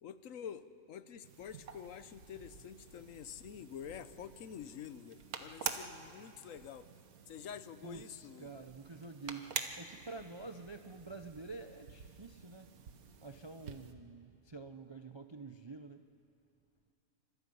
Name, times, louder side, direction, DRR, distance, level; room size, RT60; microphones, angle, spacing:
voice 1, 0.0-6.8 7.3-8.5, left 8 dB, 65° left, 13 dB, 1.1 m, -48 dB
sound 1, 1.2-13.9, right 6 dB, 85° right, 1.6 m, -47 dB
voice 2, 7.8-12.7 13.2-16.0, right 3 dB, 35° right, 7 dB, 0.4 m, -48 dB
28.0 x 25.0 x 5.5 m, 2.6 s
omnidirectional pair, 1.5 m